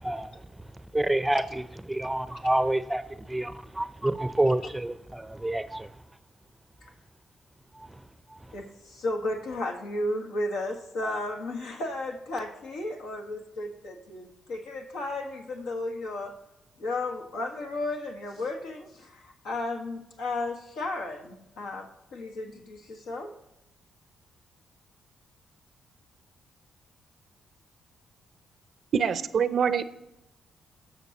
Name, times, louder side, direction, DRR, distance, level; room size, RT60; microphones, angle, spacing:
voice 1, 0.0-0.4 0.9-1.6 1.9-5.9 7.8-7.9 8.3-8.4, right 1 dB, 10° right, 13 dB, 0.5 m, -28 dB
voice 2, 8.5-16.3 16.8-23.3, left 2 dB, 80° left, 2 dB, 1.5 m, -34 dB
voice 3, 28.9-29.8, right 7 dB, 60° right, 13 dB, 0.5 m, -24 dB
19.0 x 6.3 x 2.9 m, 0.87 s
supercardioid pair, 55°, 0 cm